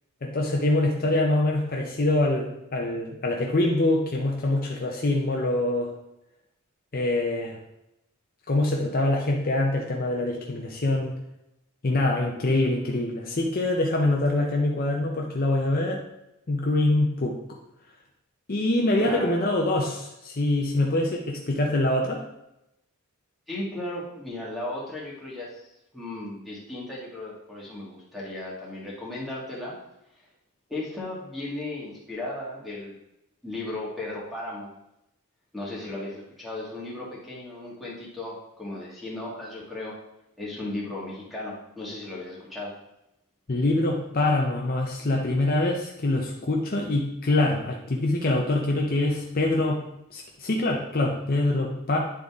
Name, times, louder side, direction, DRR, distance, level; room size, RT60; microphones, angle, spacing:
voice 1, 0.2-5.9 6.9-7.6 8.5-11.2 11.8-16.0 16.5-17.4 18.5-22.2 43.5-49.8 50.1-52.0, left 2 dB, 40° left, 0 dB, 0.7 m, -24 dB
voice 2, 19.0-19.4 23.5-29.7 30.7-32.9 33.4-34.7 35.5-40.0 40.4-42.7, left 2 dB, ahead, -7 dB, 1.7 m, -35 dB
10.0 x 3.9 x 3.6 m, 0.87 s
head